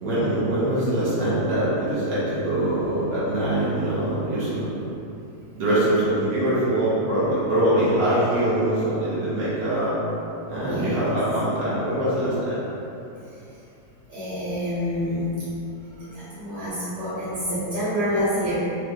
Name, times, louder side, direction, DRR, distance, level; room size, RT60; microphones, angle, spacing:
voice 1, 0.0-4.7 5.6-9.9 10.5-12.6, right 1 dB, 85° right, -11 dB, 1.4 m, -23 dB
voice 2, 10.6-11.0 14.1-15.3 16.0-18.6, equal, 45° right, -11 dB, 1.8 m, -27 dB
3.4 x 3.1 x 2.3 m, 2.9 s
omnidirectional pair, 1.7 m